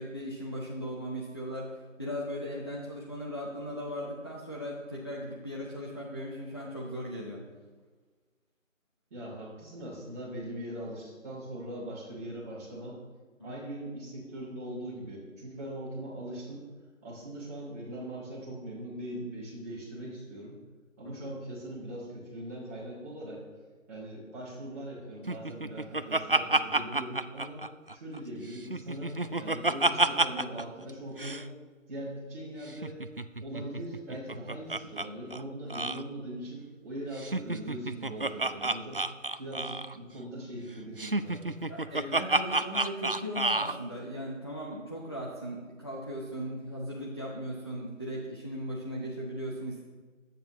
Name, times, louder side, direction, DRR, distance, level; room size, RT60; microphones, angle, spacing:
voice 1, 0.0-7.4 13.4-13.5 21.0-21.2 41.7-49.8, equal, 20° left, -5 dB, 0.9 m, -38 dB
voice 2, 9.1-13.0 13.4-16.7 17.0-20.6 21.0-23.4 23.9-27.6 27.9-31.5 31.9-33.0 33.4-39.0 39.4-41.5, right 1 dB, 10° right, -8 dB, 2.9 m, -40 dB
Laughter, 25.3-28.2 28.5-30.6 30.9-31.0 31.2-31.4 32.7-35.1 35.3-35.4 35.7-36.0 37.2-40.0 41.0-43.8, right 2 dB, 45° right, 0.4 m, -29 dB
23.0 x 9.2 x 3.1 m, 1.4 s
figure-of-eight pair, 165°, 39 cm